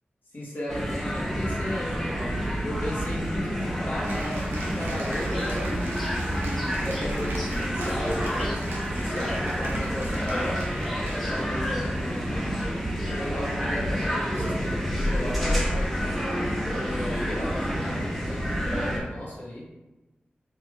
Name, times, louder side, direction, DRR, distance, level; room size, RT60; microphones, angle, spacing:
voice 1, 0.3-10.7 11.3-12.6 13.1-15.9 16.7-19.6, left 1 dB, 60° left, -5 dB, 1.2 m, -35 dB
sound 1, 0.7-19.0, equal, ahead, 1.2 m, -28 dB
Cheering / Applause, 4.0-11.5, right 1 dB, 90° right, 0.7 m, -38 dB
4.3 x 3.3 x 2.2 m, 1.1 s
cardioid pair, 45°, 4 cm